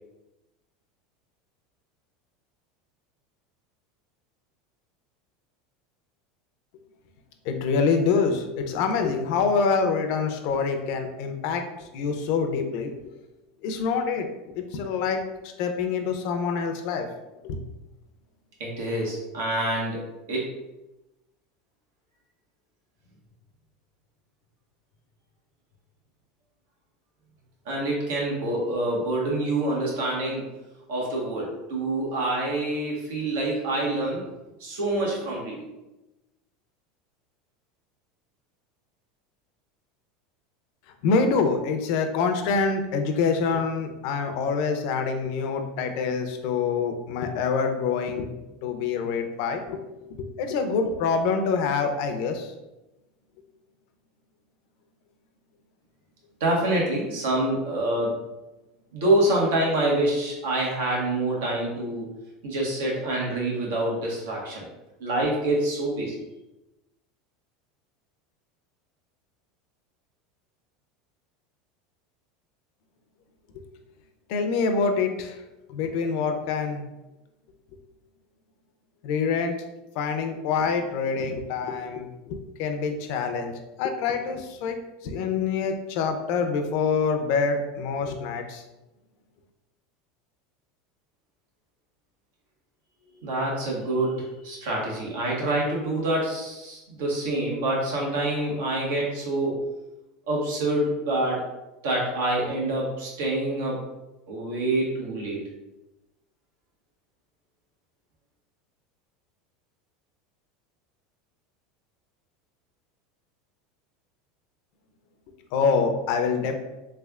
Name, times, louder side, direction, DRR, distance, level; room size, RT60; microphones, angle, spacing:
voice 1, 7.4-13.1 13.6-14.3 14.5-17.1 17.4-17.6 41.0-48.3 48.6-49.8 50.2-52.5 73.5-73.6 74.3-75.4 75.7-76.8 79.0-79.5 79.9-83.5 83.8-88.6 115.5-116.5, left 5 dB, 60° left, 6 dB, 0.5 m, -26 dB
voice 2, 18.6-20.0 20.3-20.5 27.6-30.5 30.9-34.2 34.6-35.7 56.4-58.2 58.9-62.1 62.4-64.7 65.0-66.2 93.1-99.6 100.3-101.4 101.8-103.8 104.3-105.4, right 1 dB, 85° right, -3 dB, 1.3 m, -26 dB
3.5 x 3.3 x 2.4 m, 1.0 s
supercardioid pair, 145°, 0 cm